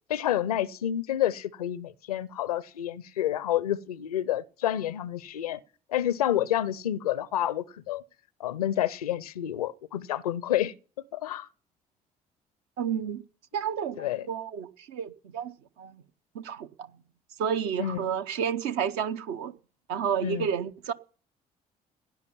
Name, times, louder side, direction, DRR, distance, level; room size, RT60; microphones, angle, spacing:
voice 1, 0.1-5.6 5.9-8.0 8.4-10.7 11.1-11.5 14.0-14.3 17.8-18.0 20.2-20.5, left 12 dB, 75° left, 0.5 m, -29 dB
voice 2, 12.8-13.2 13.5-15.5 15.8-16.0 16.3-16.9 17.4-19.5 19.9-20.9, right 8 dB, 60° right, 0.8 m, -31 dB
16.5 x 9.7 x 5.6 m
figure-of-eight pair, 50°, 19 cm